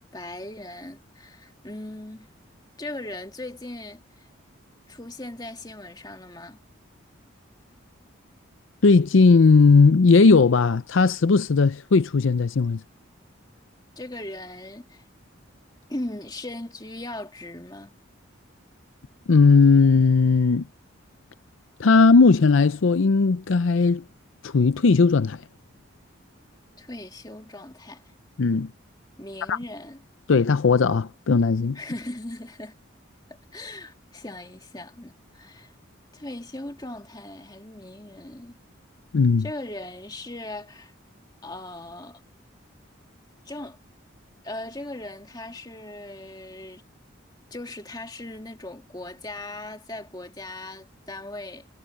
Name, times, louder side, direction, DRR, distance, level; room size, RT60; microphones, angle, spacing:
voice 1, 0.1-2.3 2.8-4.3 4.9-6.6 14.0-15.0 15.9-18.0 26.8-28.0 29.2-30.0 31.7-32.8 33.3-35.8 36.1-38.6 39.4-40.9 41.4-42.2 43.5-43.8 44.4-46.8 47.5-51.7, left 1 dB, 20° left, 1.9 m, -38 dB
voice 2, 8.8-12.8 19.3-20.7 21.8-24.0 24.4-25.4 28.4-28.7 29.5-29.6 30.3-31.8 39.1-39.5, left 4 dB, 70° left, 0.5 m, -17 dB
head